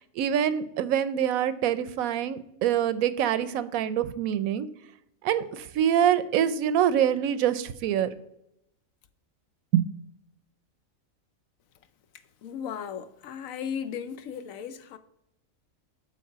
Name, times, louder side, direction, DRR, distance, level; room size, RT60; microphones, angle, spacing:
voice 1, 0.2-4.7 5.2-8.1 9.7-9.9, right 10 dB, 85° right, 1.0 m, -25 dB
voice 2, 12.4-15.0, left 8 dB, 75° left, 1.0 m, -36 dB
7.3 x 4.0 x 5.6 m
omnidirectional pair, 1.4 m